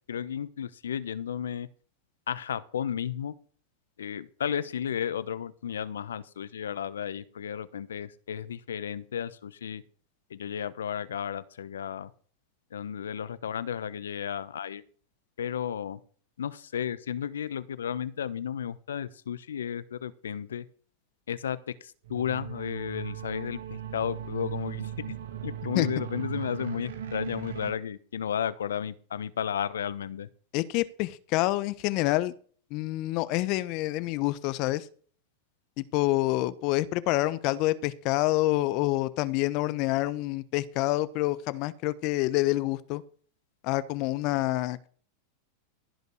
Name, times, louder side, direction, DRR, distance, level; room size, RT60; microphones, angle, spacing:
voice 1, 0.1-1.7 2.3-3.3 4.0-9.8 10.3-12.1 12.7-14.8 15.4-16.0 16.4-20.6 21.3-24.9 25.4-30.3, left 8 dB, 85° left, 16 dB, 0.9 m, -33 dB
sound 1, 22.0-27.7, right 10 dB, 75° right, 2.0 m, -37 dB
voice 2, 30.5-32.3 32.7-34.9 35.8-43.0 43.6-44.9, left 18 dB, 55° left, 16 dB, 0.9 m, -27 dB
15.5 x 5.3 x 6.4 m, 0.43 s
hypercardioid pair, 105°, 0 cm